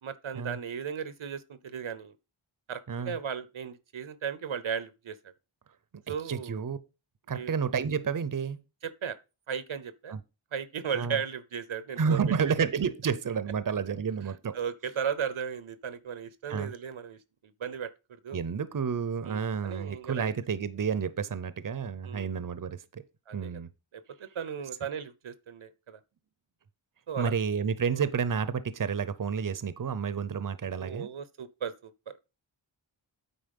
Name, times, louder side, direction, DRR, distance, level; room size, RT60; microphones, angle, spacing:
voice 1, 0.0-2.2 2.7-5.2 6.1-6.6 7.3-7.5 8.8-9.2 9.5-10.2 10.5-12.2 14.5-17.2 17.6-18.4 19.3-20.3 22.0-22.3 23.3-23.6 23.9-26.0 27.1-27.3 27.9-28.1 30.7-32.2, right 7 dB, 80° right, 0.8 m, -36 dB
voice 2, 6.1-6.8 7.3-8.6 10.1-10.2 10.9-11.2 12.0-14.6 16.5-16.7 18.3-23.0 23.3-23.7 27.2-31.1, right 6 dB, 45° right, 0.7 m, -30 dB
9.2 x 4.2 x 5.3 m
wide cardioid pair, 80°, 47 cm